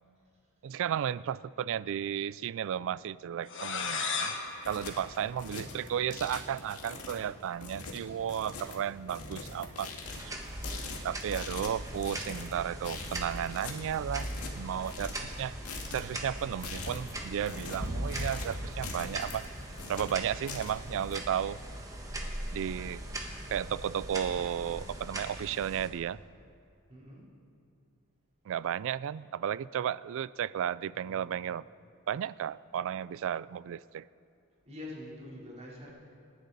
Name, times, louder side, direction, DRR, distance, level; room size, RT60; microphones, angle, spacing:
voice 1, 0.6-4.3 4.7-9.9 11.0-15.6 15.9-19.5 19.9-21.6 22.5-23.0 23.5-26.2 28.5-31.6 32.1-34.1, right 9 dB, 60° right, 19 dB, 0.3 m, -34 dB
sound 1, 3.5-6.1, left 5 dB, 60° left, 1.3 m, -36 dB
sound 2, 4.4-21.2, left 3 dB, 85° left, 2.0 m, -43 dB
sound 3, 10.0-25.9, right 1 dB, 15° right, 1.4 m, -40 dB
voice 2, 26.9-27.2 30.9-31.4 34.6-35.9, left 1 dB, 30° right, -5 dB, 3.9 m, -45 dB
27.5 x 10.5 x 4.1 m, 2.4 s
head